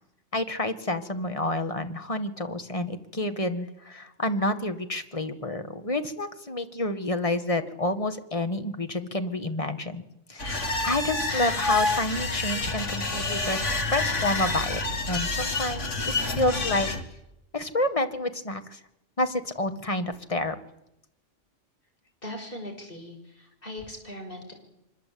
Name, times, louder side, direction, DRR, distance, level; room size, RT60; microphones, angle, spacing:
voice 1, 0.3-10.0 10.3-14.8 15.1-16.0 16.3-16.9 17.5-18.8 19.2-20.5, left 1 dB, 30° left, 8 dB, 1.8 m, -29 dB
sound 1, 10.4-17.0, left 3 dB, 75° left, 2.5 m, -28 dB
voice 2, 22.2-24.5, left 1 dB, 45° left, 3 dB, 6.3 m, -40 dB
24.5 x 21.5 x 8.6 m, 0.86 s
omnidirectional pair, 1.3 m